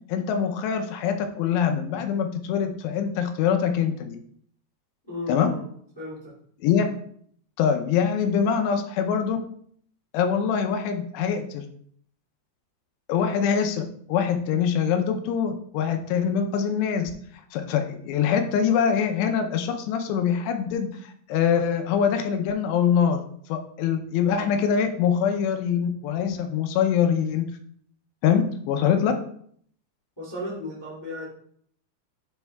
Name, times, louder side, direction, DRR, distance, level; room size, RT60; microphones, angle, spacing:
voice 1, 0.1-4.2 5.3-5.5 6.6-6.9 7.6-9.4 10.1-11.7 13.1-13.8 14.1-17.1 17.5-23.2 23.5-27.5 28.2-29.1, left 7 dB, 80° left, 6 dB, 2.7 m, -24 dB
voice 2, 5.1-5.6 5.9-6.3 30.2-31.2, left 1 dB, 35° left, -6 dB, 0.4 m, -34 dB
10.5 x 4.4 x 2.3 m, 0.62 s
omnidirectional pair, 5.1 m